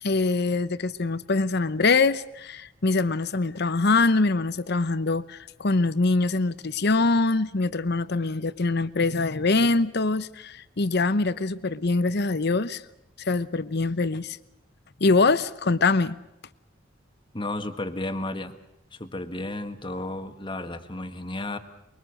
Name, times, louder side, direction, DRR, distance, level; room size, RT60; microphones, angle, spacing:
voice 1, 0.0-12.8 13.2-14.4 15.0-16.1, left 3 dB, 55° left, 0.9 m, -24 dB
voice 2, 17.3-18.5 18.9-21.6, left 2 dB, 25° left, 1.6 m, -33 dB
24.0 x 23.5 x 6.5 m
head